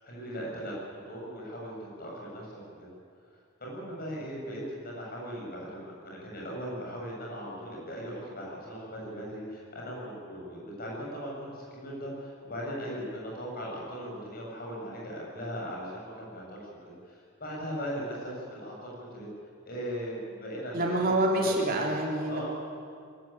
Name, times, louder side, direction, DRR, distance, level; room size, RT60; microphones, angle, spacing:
voice 1, 0.0-2.9 3.6-16.6 17.0-19.3 19.7-21.0 21.3-21.6 22.3-22.5, equal, 45° left, -3 dB, 7.4 m, -38 dB
voice 2, 20.7-22.5, right 1 dB, 45° right, -1 dB, 3.5 m, -27 dB
22.0 x 14.5 x 9.1 m, 2.3 s
head